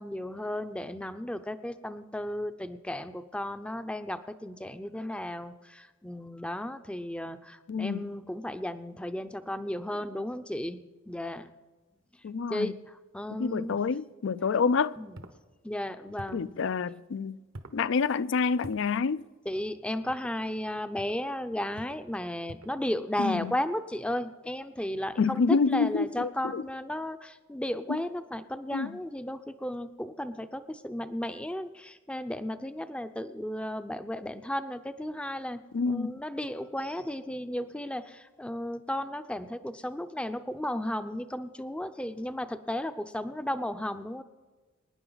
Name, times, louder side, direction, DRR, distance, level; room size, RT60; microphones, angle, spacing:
voice 1, 0.0-11.5 12.5-13.8 15.0-15.2 15.6-16.5 19.5-35.6 35.9-44.2, left 1 dB, 5° left, 0.5 m, -34 dB
voice 2, 7.7-8.1 12.2-12.7 13.3-15.0 16.3-17.4 17.7-19.2 23.2-23.5 25.2-26.6 27.9-28.0 28.7-29.0 35.7-36.1, left 5 dB, 60° left, 0.4 m, -28 dB
sound 1, 15.1-15.4 16.2-16.5 17.5-17.8 18.6-18.9 20.1-20.4 21.0-21.2 21.7-22.1 22.5-22.8, right 1 dB, 80° right, 1.1 m, -46 dB
25.0 x 10.0 x 4.0 m
head